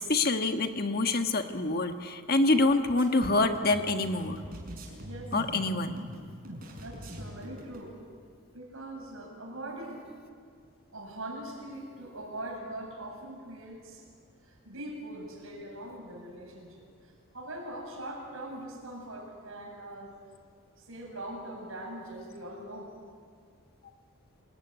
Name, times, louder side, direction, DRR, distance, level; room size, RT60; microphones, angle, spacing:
voice 1, 0.0-4.4 5.3-6.0, left 2 dB, 45° left, 6 dB, 1.4 m, -26 dB
sound 1, 3.0-7.9, equal, 40° right, 6.4 m, -43 dB
voice 2, 5.0-5.4 6.4-7.9 8.5-10.0 10.9-14.1 14.4-16.8 17.3-20.1 20.8-22.9, right 1 dB, 65° right, 0 dB, 7.9 m, -42 dB
27.5 x 20.0 x 9.9 m, 2.2 s
head